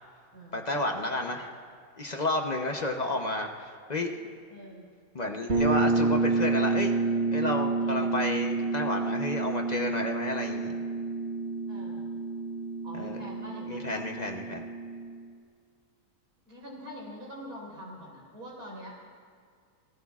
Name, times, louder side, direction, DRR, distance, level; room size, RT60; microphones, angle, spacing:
voice 1, 0.5-1.5 2.0-4.3 5.1-6.9 7.3-10.8 13.0-13.2 13.7-14.7, left 2 dB, 35° left, 3 dB, 0.7 m, -31 dB
voice 2, 4.5-4.9 7.8-8.2 11.7-12.1 12.8-14.1 16.5-19.0, equal, 70° right, -2 dB, 5.0 m, -44 dB
sound 1, 5.5-15.2, right 3 dB, 40° right, 1.5 m, -29 dB
26.0 x 19.0 x 2.4 m, 2.1 s
omnidirectional pair, 1.7 m